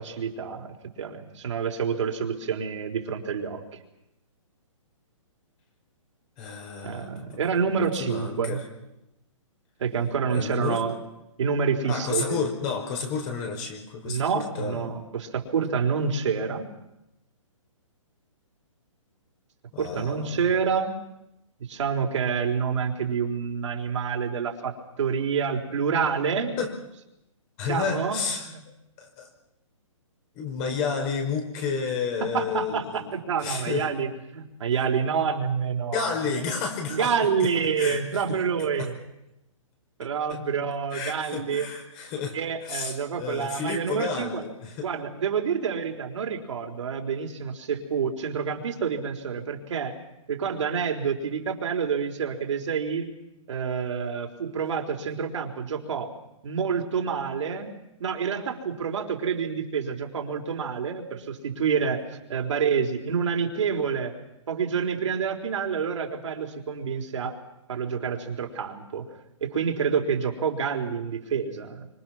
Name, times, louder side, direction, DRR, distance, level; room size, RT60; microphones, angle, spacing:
voice 1, 0.0-3.6 6.8-8.6 9.8-10.9 11.4-12.5 14.0-16.7 19.8-20.9 21.7-26.6 27.7-28.6 32.2-36.1 36.9-39.0 40.0-41.7 42.3-44.4 44.8-49.9 50.3-53.1 53.5-56.1 56.4-57.7 58.0-64.1 64.5-67.4 67.7-69.1 69.4-71.9, right 6 dB, 65° right, 3 dB, 4.0 m, -28 dB
voice 2, 6.4-7.4 7.7-8.6 10.3-10.9 11.8-15.0 19.7-20.4 26.6-26.8 27.6-28.5 29.0-29.3 30.3-33.1 33.4-33.9 35.9-37.1 37.4-37.5 37.8-38.0 38.8-38.9 40.3-40.4 40.9-44.9, left 5 dB, 30° left, 3 dB, 5.3 m, -31 dB
26.5 x 25.5 x 6.1 m, 0.88 s
hypercardioid pair, 150°, 17 cm